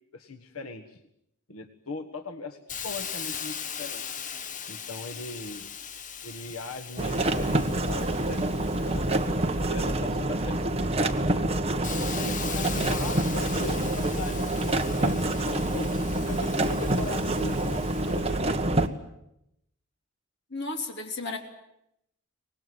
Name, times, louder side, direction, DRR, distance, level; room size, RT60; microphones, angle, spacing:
voice 1, 0.1-1.0 1.5-4.0 4.7-5.7 6.2-9.3 9.7-11.8 12.1-16.0 16.3-18.6, left 2 dB, 90° left, 7 dB, 1.5 m, -39 dB
Hiss, 2.7-10.3 10.8-18.5, left 8 dB, 40° left, 1.0 m, -40 dB
sound 1, 7.0-18.9, right 1 dB, 30° right, 1.4 m, -27 dB
voice 2, 20.5-21.4, left 3 dB, 55° left, 3 dB, 3.6 m, -33 dB
24.5 x 19.5 x 9.5 m, 0.81 s
head